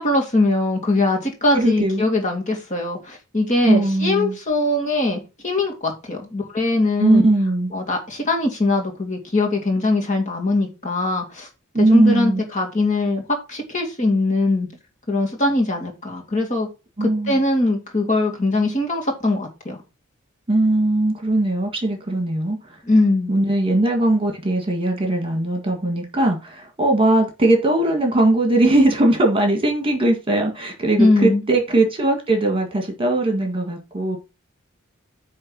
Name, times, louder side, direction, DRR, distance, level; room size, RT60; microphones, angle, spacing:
voice 1, 0.0-7.3 7.7-11.5 11.8-14.7 15.1-16.7 17.0-19.8 22.9-23.3 31.0-31.4, left 2 dB, 35° left, 2.4 m, -21 dB
voice 2, 1.5-2.0 3.6-4.4 7.0-7.7 11.7-12.4 17.0-17.4 20.5-22.8 23.3-34.2, right 2 dB, 25° right, 1.9 m, -19 dB
9.6 x 3.4 x 6.1 m
head